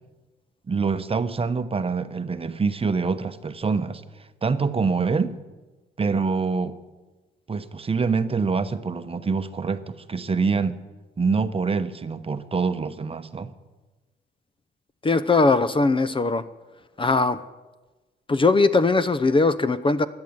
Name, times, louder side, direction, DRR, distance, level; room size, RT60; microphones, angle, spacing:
voice 1, 0.7-4.0 4.4-5.3 6.0-6.8 7.5-10.8 11.2-13.5, right 4 dB, 30° right, 10 dB, 0.9 m, -25 dB
voice 2, 15.0-16.4 17.0-17.4 18.3-20.1, left 3 dB, 25° left, 13 dB, 0.7 m, -20 dB
16.0 x 10.5 x 7.9 m, 1.2 s
cardioid pair, 90°, 20 cm